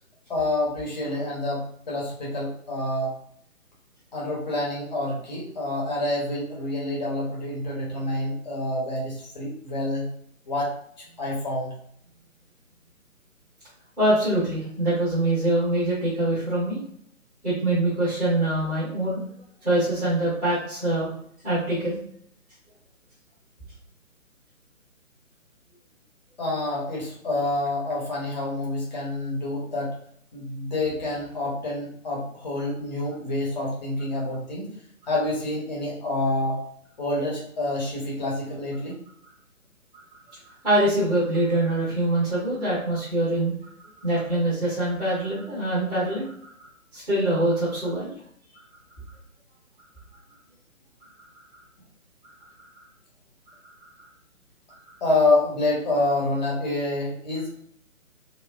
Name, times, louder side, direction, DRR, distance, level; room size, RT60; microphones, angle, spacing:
voice 1, 0.3-3.2 4.1-10.1 10.5-10.7 11.2-11.7 26.4-30.0 30.3-34.8 35.1-36.6 37.0-39.0 55.0-57.5, left 2 dB, 30° left, -4 dB, 1.3 m, -27 dB
voice 2, 14.0-16.8 17.4-19.2 19.6-21.1 21.4-22.0 40.6-43.5 44.0-46.3 46.9-48.1, right 1 dB, ahead, -12 dB, 1.0 m, -24 dB
3.0 x 2.8 x 3.5 m, 0.66 s
figure-of-eight pair, 145°, 43 cm